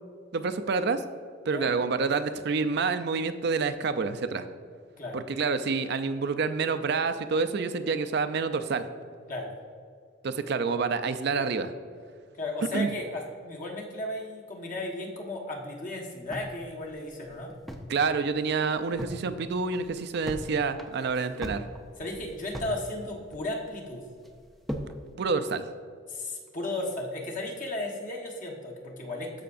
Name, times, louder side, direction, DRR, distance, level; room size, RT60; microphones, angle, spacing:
voice 1, 0.3-1.0 1.5-4.4 5.1-8.9 10.2-11.7 12.7-12.9 17.9-21.6 25.2-25.7, right 4 dB, 60° right, 10 dB, 0.5 m, -28 dB
voice 2, 12.4-17.5 22.0-24.0 26.1-29.4, left 2 dB, 40° left, -1 dB, 1.3 m, -35 dB
sound 1, 16.3-18.0 18.3-18.4 18.7-19.2 19.6-20.5 20.8-22.8 23.1-23.8 24.2-25.0, equal, ahead, 0.5 m, -38 dB
13.5 x 5.7 x 2.5 m, 2.1 s
head